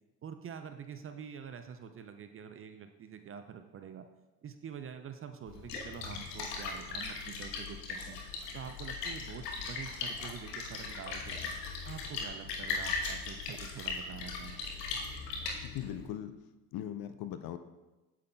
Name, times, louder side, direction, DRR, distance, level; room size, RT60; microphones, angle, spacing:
voice 1, 0.2-4.1 4.4-8.2 8.5-11.5 11.8-14.6, right 7 dB, 30° right, 8 dB, 0.5 m, -46 dB
Splash splatter, 5.5-16.1, left 4 dB, 80° left, 1.2 m, -39 dB
voice 2, 15.6-16.3 16.7-17.6, left 11 dB, 50° left, 10 dB, 0.6 m, -39 dB
8.3 x 7.3 x 2.3 m, 1.1 s
hypercardioid pair, 65°, 48 cm